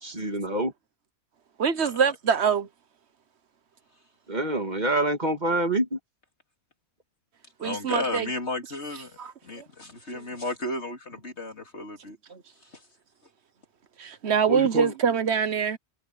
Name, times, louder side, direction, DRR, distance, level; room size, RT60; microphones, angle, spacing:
voice 1, 0.0-0.7 4.3-6.0 14.5-14.9, right 1 dB, 40° right, 2.4 m, -26 dB
voice 2, 1.6-2.7 7.6-8.3 9.2-9.3 9.6-9.7 12.3-12.4 14.0-15.8, right 7 dB, 75° right, 1.3 m, -24 dB
voice 3, 7.6-12.2 12.6-12.8, left 2 dB, 85° left, 3.9 m, -34 dB
omnidirectional pair, 1.1 m